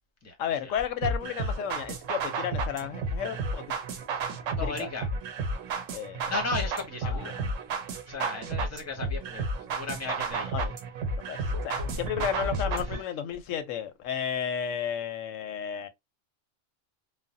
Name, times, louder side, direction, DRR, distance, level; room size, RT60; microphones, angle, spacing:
voice 1, 0.4-3.8 4.6-4.9 5.9-6.3 7.0-7.5 10.4-10.8 11.3-15.9, left 8 dB, 90° left, 1.0 m, -33 dB
sound 1, 1.0-13.0, right 3 dB, 85° right, 1.0 m, -32 dB
voice 2, 4.6-5.1 6.3-7.4 8.1-9.5 9.7-10.5, left 3 dB, 15° left, 0.7 m, -35 dB
3.3 x 2.1 x 2.6 m
omnidirectional pair, 1.3 m